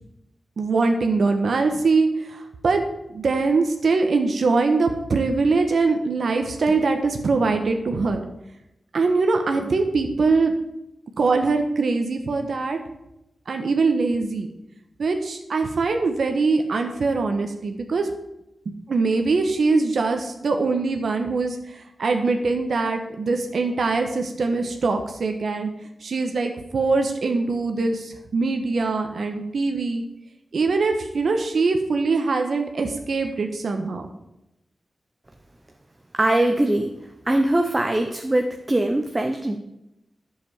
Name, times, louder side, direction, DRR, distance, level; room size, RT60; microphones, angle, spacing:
voice 1, 0.6-2.8 3.1-8.2 8.9-10.5 11.2-12.8 13.5-14.5 15.0-18.1 18.6-25.7 26.0-30.0 30.5-34.1, right 3 dB, 60° right, 5 dB, 1.2 m, -22 dB
voice 2, 36.1-36.9 37.3-39.6, right 1 dB, 15° right, 5 dB, 0.8 m, -21 dB
11.0 x 7.1 x 7.1 m, 0.87 s
wide cardioid pair, 165°, 0 cm